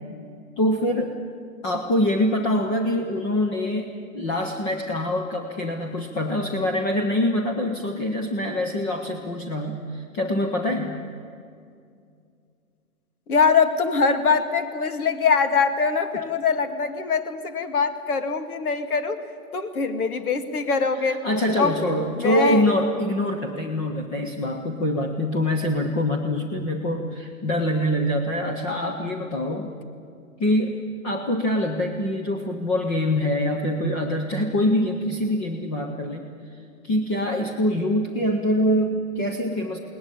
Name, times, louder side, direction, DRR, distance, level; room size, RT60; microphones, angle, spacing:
voice 1, 0.6-1.1 1.6-11.0 21.0-29.7 30.4-36.3 36.8-39.8, left 1 dB, 10° left, 3 dB, 0.5 m, -24 dB
voice 2, 13.3-19.2 19.5-21.2 21.6-21.7 22.2-22.6, left 5 dB, 75° left, 9 dB, 2.2 m, -23 dB
21.0 x 19.0 x 9.8 m, 2.4 s
hypercardioid pair, 150°, 44 cm